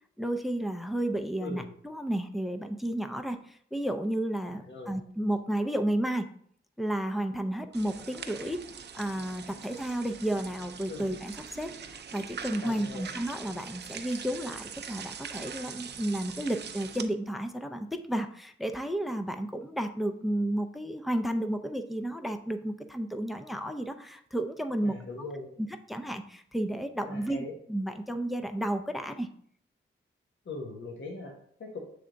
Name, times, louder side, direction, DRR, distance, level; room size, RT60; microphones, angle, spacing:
voice 1, 0.2-6.3 6.8-8.6 8.9-25.0 25.6-29.3, right 1 dB, ahead, 7 dB, 0.4 m, -32 dB
voice 2, 4.4-5.0 10.9-11.1 12.6-13.1 24.8-25.5 27.1-27.5 30.4-31.8, left 3 dB, 60° left, 1 dB, 1.0 m, -40 dB
sound 1, 7.7-17.0, right 7 dB, 55° right, 0.5 m, -43 dB
7.4 x 3.4 x 3.8 m, 0.63 s
wide cardioid pair, 115°, 21 cm